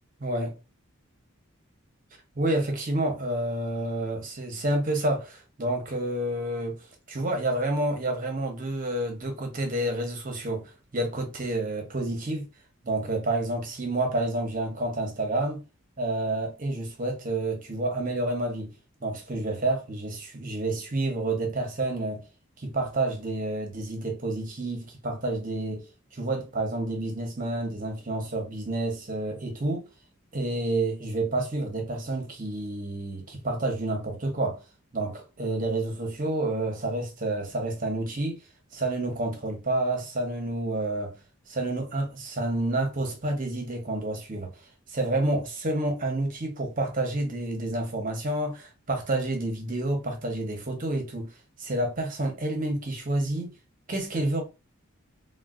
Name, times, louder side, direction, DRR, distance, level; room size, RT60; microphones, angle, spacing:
voice 1, 2.4-12.5 12.8-15.6 16.0-18.7 19.0-22.2 22.6-29.9 30.3-34.6 34.9-38.4 38.7-41.2 41.5-44.5 44.9-51.3 51.6-53.5 53.9-54.4, right 2 dB, 40° right, 0.8 m, -29 dB
3.7 x 2.2 x 2.4 m
head